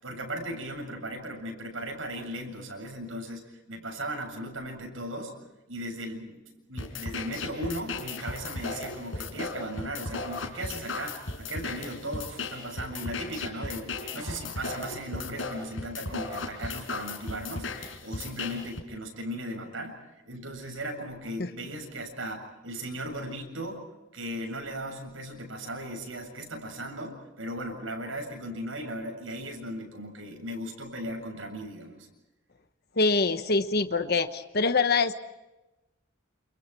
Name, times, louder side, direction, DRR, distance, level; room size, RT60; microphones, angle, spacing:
voice 1, 0.0-5.4 5.7-6.4 6.7-23.8 24.1-32.1, right 1 dB, 75° right, 3 dB, 7.6 m, -37 dB
sound 1, 6.8-18.8, left 3 dB, 70° left, 4.8 m, -36 dB
voice 2, 33.0-35.1, left 3 dB, 50° left, 9 dB, 1.2 m, -24 dB
29.5 x 29.0 x 4.5 m, 1.0 s
head